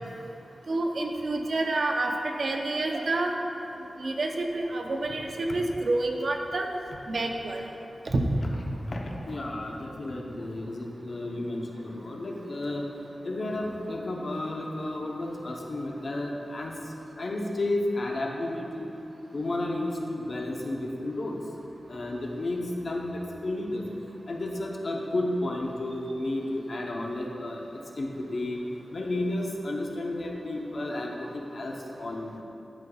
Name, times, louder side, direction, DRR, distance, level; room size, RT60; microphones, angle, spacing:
voice 1, 0.7-3.3 4.0-6.7 7.1-7.6 8.1-8.2, right 2 dB, 55° right, 3 dB, 0.6 m, -28 dB
voice 2, 8.9-12.9 13.2-16.7 17.2-18.9 19.3-21.4 21.9-23.8 24.3-27.6 27.9-28.6 28.9-32.4, left 1 dB, 55° left, 0 dB, 0.8 m, -32 dB
12.0 x 5.3 x 2.3 m, 2.8 s
wide cardioid pair, 105°, 0 cm